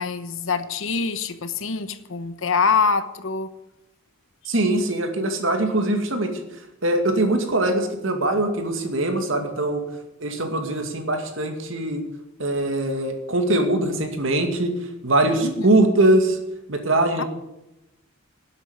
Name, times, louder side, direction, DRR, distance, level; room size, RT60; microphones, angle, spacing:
voice 1, 0.0-3.5 15.4-15.8 17.2-17.3, left 5 dB, 65° left, 12 dB, 1.0 m, -24 dB
voice 2, 4.5-6.3 6.8-9.8 10.2-12.0 12.4-14.7 15.0-16.4 16.7-17.2, right 1 dB, 65° right, 5 dB, 2.3 m, -22 dB
12.0 x 8.2 x 9.8 m, 0.93 s
head